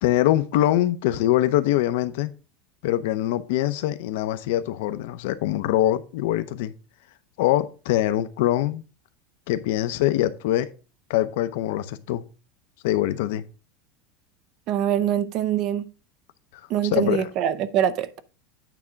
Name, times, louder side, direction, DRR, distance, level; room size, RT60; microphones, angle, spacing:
voice 1, 0.0-2.3 2.8-6.7 7.4-8.8 9.5-10.7 11.1-12.2 12.8-13.4 16.9-17.3, left 14 dB, 70° left, 0.8 m, -23 dB
voice 2, 14.7-15.8 16.7-18.2, right 10 dB, 40° right, 0.5 m, -24 dB
9.0 x 3.6 x 5.9 m
supercardioid pair, 165°, 0 cm